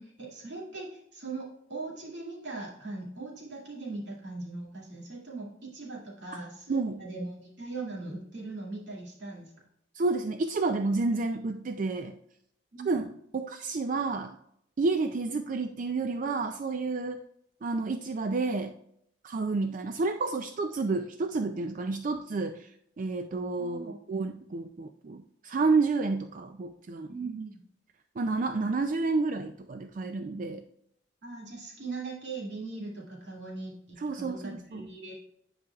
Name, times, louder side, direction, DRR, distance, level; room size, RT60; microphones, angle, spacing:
voice 1, 0.0-9.5 12.7-12.9 23.6-24.0 27.1-27.6 31.2-35.2, right 3 dB, 70° right, -4 dB, 2.3 m, -40 dB
voice 2, 6.7-7.0 9.9-12.2 12.9-13.1 13.3-14.4 14.8-17.2 17.6-18.7 19.2-22.7 23.0-27.1 28.2-30.6 34.0-34.9, right 3 dB, 45° right, 7 dB, 0.4 m, -30 dB
10.5 x 4.9 x 2.3 m, 0.72 s
head